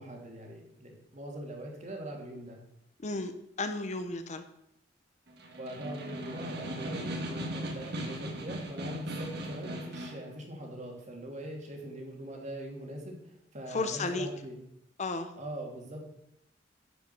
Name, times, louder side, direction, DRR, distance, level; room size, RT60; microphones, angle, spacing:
voice 1, 0.0-2.6 5.6-14.6 15.4-16.0, right 1 dB, 40° right, 1 dB, 2.6 m, -42 dB
voice 2, 3.0-3.3 3.6-4.4 13.7-14.3 15.0-15.3, left 3 dB, 40° left, 9 dB, 0.8 m, -33 dB
Snare drum, 5.3-10.3, equal, 60° right, 1.9 m, -38 dB
11.0 x 5.6 x 7.0 m, 0.79 s
head